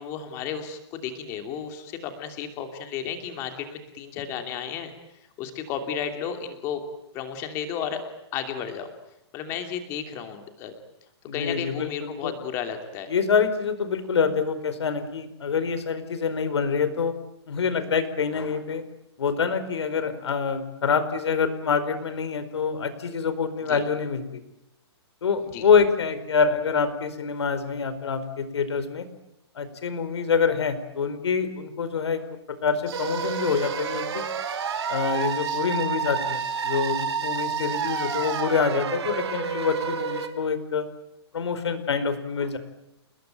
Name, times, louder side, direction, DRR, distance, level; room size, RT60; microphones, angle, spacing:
voice 1, 0.0-4.9 5.4-6.8 7.1-8.0 8.3-8.9 9.3-10.7 11.3-13.1 23.7-23.8 25.5-25.6, left 8 dB, 20° left, 6 dB, 2.8 m, -33 dB
voice 2, 11.3-12.3 13.1-17.1 17.5-18.8 19.2-24.4 25.2-29.1 29.5-32.2 32.5-34.2 34.9-40.9 41.3-42.6, left 5 dB, 75° left, 11 dB, 4.8 m, -26 dB
sound 1, 32.9-38.4, right 12 dB, 20° right, 2.9 m, -45 dB
sound 2, 32.9-40.3, right 6 dB, 70° right, 4.3 m, -29 dB
29.5 x 21.0 x 9.1 m, 0.84 s
hypercardioid pair, 175°, 14 cm